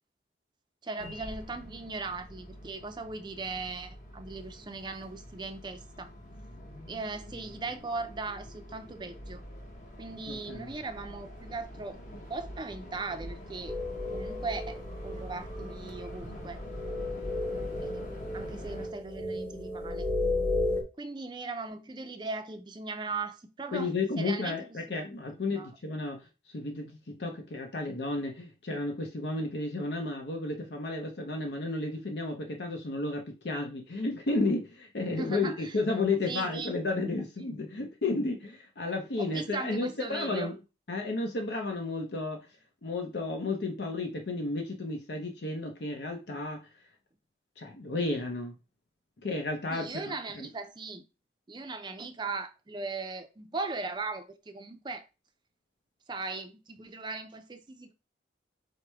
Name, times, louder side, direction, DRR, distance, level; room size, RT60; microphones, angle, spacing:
voice 1, 0.8-6.1 6.9-9.4 10.0-13.7 14.1-14.8 15.0-16.6 17.8-18.1 18.3-20.1 21.0-25.2 25.6-25.7 35.2-35.7 36.3-36.8 39.2-40.5 49.7-51.0 51.5-55.0 56.1-57.9, right 3 dB, 25° right, 0.4 m, -38 dB
sound 1, 1.0-18.9, equal, 45° left, 1.0 m, -45 dB
voice 2, 10.3-10.7 23.7-40.6 40.9-42.5 42.8-46.6 47.6-48.6 49.2-50.5, left 3 dB, 80° left, 0.8 m, -32 dB
sound 2, 13.7-20.8, left 2 dB, 10° left, 0.7 m, -34 dB
4.7 x 2.1 x 4.6 m
head